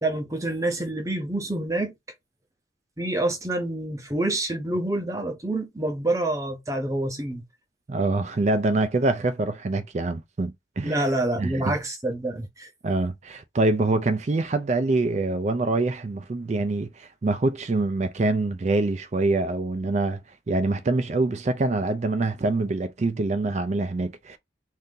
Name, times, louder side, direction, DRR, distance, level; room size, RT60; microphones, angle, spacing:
voice 1, 0.0-1.9 3.0-7.5 10.8-12.7, right 1 dB, 15° right, 0.7 m, -27 dB
voice 2, 7.9-11.0 11.4-11.7 12.8-20.2 20.5-24.4, right 2 dB, 40° right, 0.4 m, -25 dB
2.7 x 2.6 x 3.6 m
head